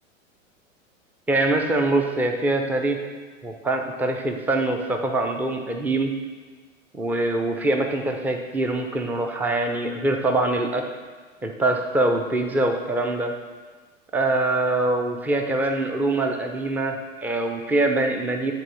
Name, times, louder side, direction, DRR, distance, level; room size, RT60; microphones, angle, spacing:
voice 1, 1.3-3.0 3.4-6.1 6.9-10.8 11.4-13.3 14.1-18.5, right 2 dB, 5° right, 4 dB, 0.5 m, -24 dB
9.1 x 4.1 x 6.3 m, 1.4 s
figure-of-eight pair, 90°, 40 cm